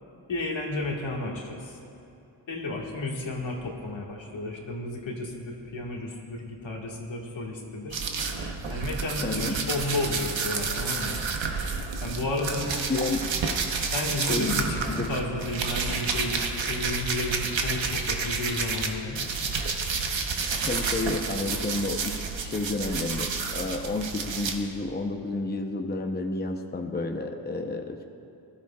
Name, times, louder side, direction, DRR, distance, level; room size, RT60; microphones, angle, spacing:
voice 1, 0.3-1.8 2.5-8.0 8.7-11.2 12.0-12.9 13.9-19.2, left 2 dB, 80° left, -1 dB, 1.8 m, -32 dB
sound 1, 7.9-18.9 19.1-24.5, right 4 dB, 80° right, 1.1 m, -30 dB
voice 2, 9.2-9.6 12.9-13.3 14.1-14.5 14.9-15.1 20.6-28.0, left 2 dB, 20° left, 4 dB, 0.7 m, -30 dB
20.0 x 12.5 x 2.4 m, 2.7 s
cardioid pair, 80°, 45 cm